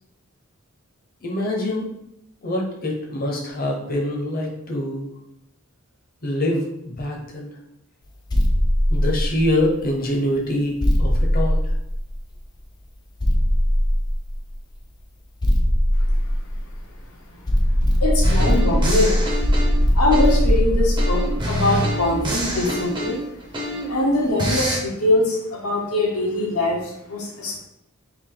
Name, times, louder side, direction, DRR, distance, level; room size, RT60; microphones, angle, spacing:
voice 1, 1.2-1.9 2.4-5.1 6.2-7.5 8.9-11.6, left 1 dB, 40° left, -1 dB, 0.8 m, -24 dB
sound 1, 8.3-9.8 10.8-12.4 13.2-14.6 15.4-17.0 17.5-22.7, equal, 20° left, 0.4 m, -20 dB
voice 2, 18.0-19.2 19.9-23.2 23.7-27.6, left 2 dB, 85° left, -2 dB, 1.1 m, -22 dB
sound 2, 18.2-20.6 21.0-24.0 24.4-24.8, equal, 20° right, 0.6 m, -26 dB
3.5 x 2.6 x 3.7 m, 0.79 s
head